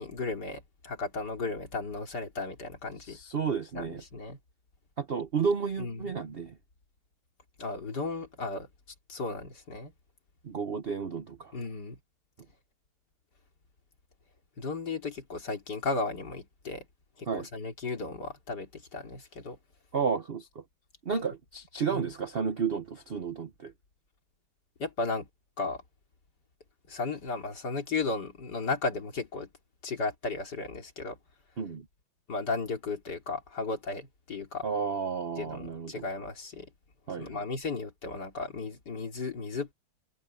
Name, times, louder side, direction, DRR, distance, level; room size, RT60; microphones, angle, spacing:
voice 1, 0.0-3.2 3.7-4.4 5.8-6.2 7.6-8.7 9.1-9.9 11.5-12.0 14.6-16.9 17.2-19.6 21.9-22.1 24.8-25.3 25.6-25.8 26.9-29.5 29.8-31.2 32.3-34.6 35.4-36.7 37.2-39.7, left 3 dB, 55° left, 3.6 m, -35 dB
voice 2, 3.0-4.0 5.0-6.5 10.4-11.5 17.3-17.5 19.9-20.6 21.0-23.7 31.6-31.8 34.6-36.0 37.1-37.4, right 6 dB, 45° right, 0.8 m, -32 dB
omnidirectional pair, 2.2 m